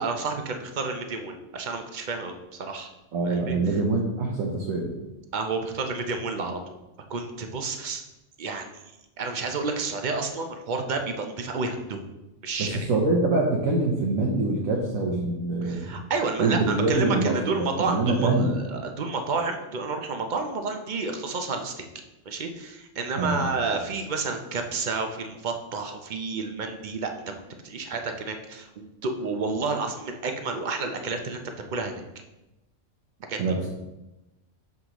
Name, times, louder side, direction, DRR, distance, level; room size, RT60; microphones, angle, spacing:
voice 1, 0.0-2.3 2.6-2.9 3.2-3.6 5.3-6.6 7.1-8.0 8.4-8.7 9.2-12.1 12.4-12.9 15.6-21.8 22.3-31.9 33.3-33.4, right 4 dB, 50° right, 5 dB, 0.6 m, -30 dB
voice 2, 3.1-4.9 12.6-15.9 16.4-18.6 23.2-23.5 33.4-33.7, right 2 dB, 80° right, -2 dB, 1.3 m, -25 dB
6.5 x 5.9 x 3.0 m, 0.98 s
omnidirectional pair, 1.4 m